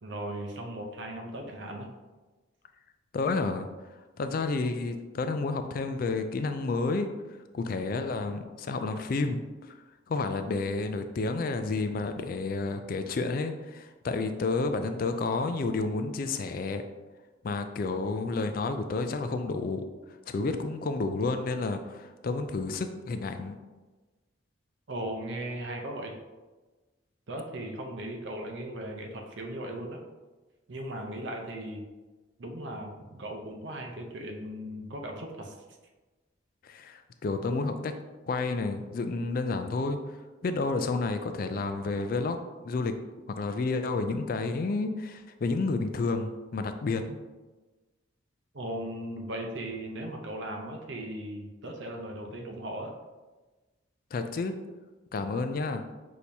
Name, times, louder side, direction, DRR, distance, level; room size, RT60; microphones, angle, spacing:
voice 1, 0.0-1.9 24.9-26.2 27.3-30.0 30.7-31.8 32.4-35.6 48.5-52.9, right 1 dB, 65° right, 2 dB, 0.6 m, -37 dB
voice 2, 3.1-3.7 4.2-7.1 7.5-9.8 10.1-16.8 17.4-19.8 20.3-23.6 36.6-37.9 38.3-40.0 40.4-42.4 42.6-42.9 43.3-47.2 54.1-54.5 55.1-55.8, left 3 dB, 45° left, 8 dB, 0.3 m, -30 dB
6.3 x 2.8 x 2.7 m, 1.2 s
head